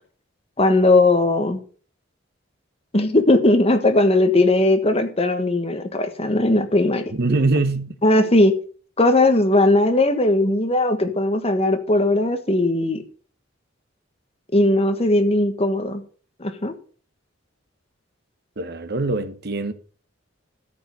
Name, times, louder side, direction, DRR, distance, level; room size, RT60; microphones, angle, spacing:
voice 1, 0.6-1.6 2.9-7.1 8.0-8.6 9.0-13.0 14.5-16.0 16.4-16.7, left 2 dB, 30° left, 1.3 m, -18 dB
voice 2, 7.1-7.9 18.6-19.7, right 3 dB, 55° right, 1.0 m, -23 dB
13.0 x 5.3 x 6.5 m
head